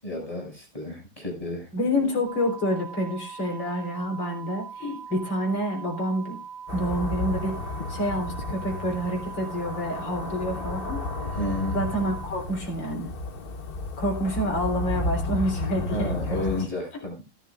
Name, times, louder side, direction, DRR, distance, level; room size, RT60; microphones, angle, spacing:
voice 1, 0.0-1.7 11.1-11.8 15.9-17.2, left 1 dB, 15° left, 0 dB, 5.9 m, -32 dB
voice 2, 1.7-6.4 6.7-7.6 7.9-11.0 11.7-13.1 14.0-16.4, equal, 70° left, 1 dB, 4.3 m, -28 dB
sound 1, 2.3-12.3, right 7 dB, 45° right, 3.6 m, -41 dB
sound 2, 6.7-16.7, left 2 dB, 35° left, 1.0 m, -33 dB
18.0 x 11.5 x 2.4 m, 0.28 s
omnidirectional pair, 2.1 m